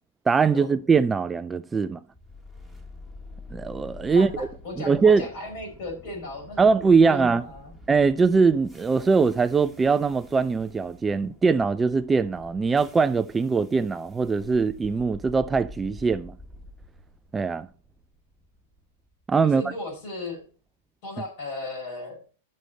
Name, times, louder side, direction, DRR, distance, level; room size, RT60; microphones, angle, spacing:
voice 1, 0.3-2.0 3.5-4.3 4.9-5.2 6.6-7.4 7.9-16.4 17.3-17.7 19.3-19.6, right 5 dB, 15° right, 0.4 m, -21 dB
sound 1, 2.1-20.2, left 2 dB, ahead, 1.6 m, -47 dB
voice 2, 4.1-7.7 19.4-20.4 21.0-22.2, left 2 dB, 55° left, 5.6 m, -36 dB
11.0 x 6.5 x 4.2 m
hypercardioid pair, 115°, 0 cm